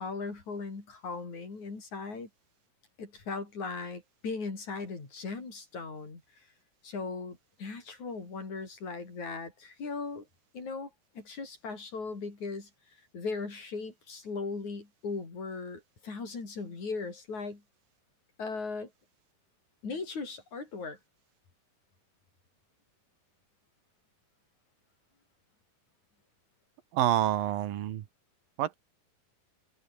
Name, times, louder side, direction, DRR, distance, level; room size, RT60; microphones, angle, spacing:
voice 1, 0.0-2.3 3.0-6.2 6.8-10.2 10.5-10.9 11.1-12.7 13.1-17.6 18.4-18.9 19.8-21.0, left 4 dB, 50° left, 6.9 m, -38 dB
voice 2, 26.9-28.0 28.6-28.8, right 12 dB, 75° right, 2.9 m, -27 dB
omnidirectional pair, 4.2 m